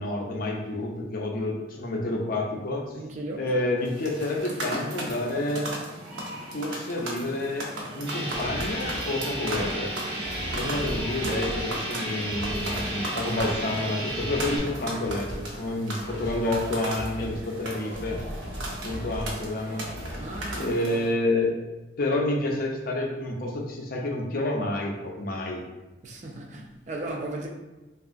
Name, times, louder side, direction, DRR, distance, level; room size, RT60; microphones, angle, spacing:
voice 1, 0.0-2.9 3.4-5.7 6.5-7.7 7.9-9.9 10.5-18.2 18.8-19.9 20.6-21.5 22.0-25.6, left 2 dB, 45° left, 0.5 m, -29 dB
voice 2, 2.9-3.5 10.6-10.9 20.2-21.1 26.0-27.5, right 2 dB, 40° right, 0.4 m, -36 dB
sound 1, 3.8-21.1, right 1 dB, 85° right, 0.6 m, -37 dB
sound 2, 8.1-14.6, right 1 dB, 55° right, 0.8 m, -33 dB
sound 3, 8.3-9.0 9.3-9.7 10.2-11.7 12.2-12.9 13.1-13.6 14.1-14.8 15.0-15.5 16.0-16.7 17.0-17.4 17.9-19.4 19.9-20.6, equal, 10° left, 0.7 m, -38 dB
3.5 x 2.3 x 2.5 m
head